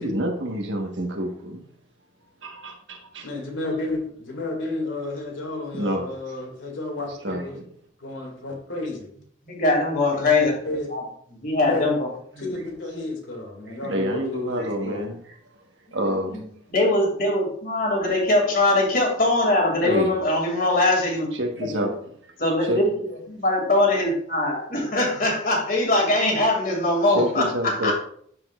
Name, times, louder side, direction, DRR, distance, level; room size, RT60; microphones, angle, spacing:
voice 1, 0.0-1.6 2.4-3.3 5.7-6.1 7.2-7.4 13.8-15.2 15.9-16.4 19.8-20.1 21.4-21.9 22.6-22.8 27.1-27.9, equal, 70° right, 2 dB, 1.4 m, -27 dB
voice 2, 3.2-7.5 8.0-9.1 10.1-10.9 11.7-11.9 12.4-15.0, left 2 dB, 80° left, 0 dB, 2.4 m, -31 dB
voice 3, 9.4-10.5 10.9-11.0 11.4-12.1 12.4-12.6 16.1-16.4 16.7-21.3 21.6-21.9 22.4-27.9, left 2 dB, 50° left, 0 dB, 2.5 m, -22 dB
12.5 x 5.1 x 2.5 m, 0.62 s
head